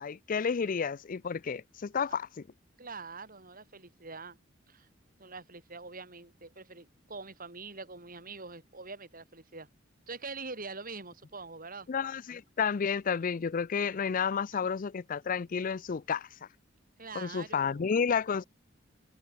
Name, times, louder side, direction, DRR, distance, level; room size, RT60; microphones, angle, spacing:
voice 1, 0.0-2.4 11.9-16.3 17.1-18.4, left 6 dB, 45° left, 0.4 m, -31 dB
voice 2, 2.8-4.4 4.7-4.9 5.2-9.7 10.1-11.9 17.0-17.9, right 4 dB, 45° right, 6.9 m, -44 dB
head